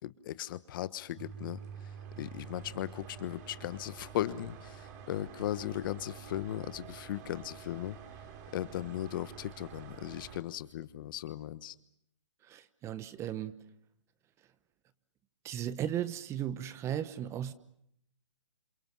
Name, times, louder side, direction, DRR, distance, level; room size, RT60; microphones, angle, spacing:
voice 1, 0.0-8.0 8.5-11.7, left 12 dB, 45° left, 1.2 m, -37 dB
sound 1, 1.2-10.4, right 7 dB, 40° right, 3.2 m, -48 dB
voice 2, 12.4-13.6 15.4-17.5, right 10 dB, 20° right, 1.0 m, -36 dB
29.0 x 28.0 x 6.2 m
hypercardioid pair, 145°, 15 cm